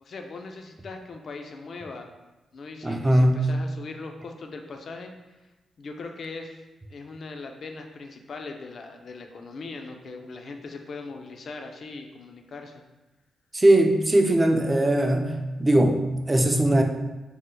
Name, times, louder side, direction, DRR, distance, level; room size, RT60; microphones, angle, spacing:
voice 1, 0.0-2.1 2.5-5.1 5.8-6.6 6.9-12.8, left 3 dB, 60° left, 4 dB, 0.4 m, -40 dB
voice 2, 2.8-3.6 13.5-16.8, right 1 dB, 20° right, 4 dB, 0.3 m, -20 dB
3.4 x 2.1 x 3.0 m, 1.1 s
cardioid pair, 75°, 0 cm